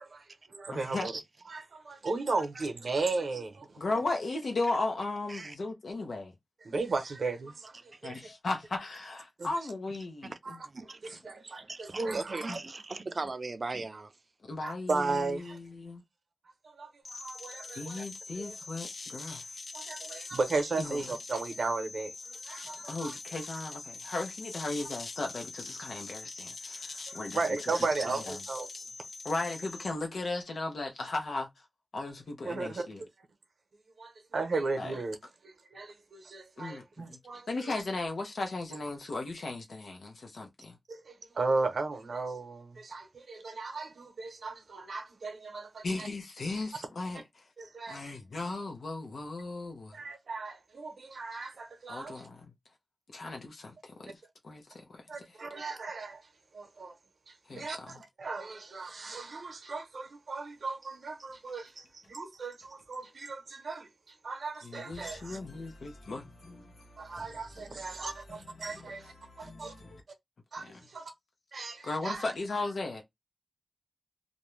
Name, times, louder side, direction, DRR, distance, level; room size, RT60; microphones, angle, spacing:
voice 1, 0.1-1.1 1.5-4.0 6.6-8.2 9.4-9.5 10.4-10.6 11.0-12.6 14.6-15.6 16.6-18.0 18.4-18.6 19.2-19.4 19.7-23.1 27.3-28.7 32.4-32.9 34.0-35.2 35.4-37.8 40.9-46.1 47.6-48.0 49.9-52.3 55.1-56.2 56.5-57.0 57.3-65.4 67.0-69.7 70.5-71.1 71.5-72.3, right 3 dB, 80° right, 0.7 m, -36 dB
voice 2, 0.7-1.1 3.8-6.3 8.0-10.6 12.5-12.6 14.4-16.0 17.7-19.6 20.8-21.0 22.9-27.7 28.3-28.4 29.2-31.5 31.9-33.0 34.8-34.9 36.6-36.8 37.1-37.2 37.5-40.8 45.8-47.4 47.9-50.0 51.9-52.5 53.1-54.1 54.4-55.0 57.5-58.0 64.6-70.0 70.6-70.8 71.8-73.0, left 2 dB, 90° left, 0.7 m, -37 dB
voice 3, 10.6-14.1, right 3 dB, 50° right, 0.4 m, -39 dB
sound 1, 17.1-29.9, left 4 dB, 65° left, 0.3 m, -43 dB
2.5 x 2.2 x 3.1 m
wide cardioid pair, 100°, 0 cm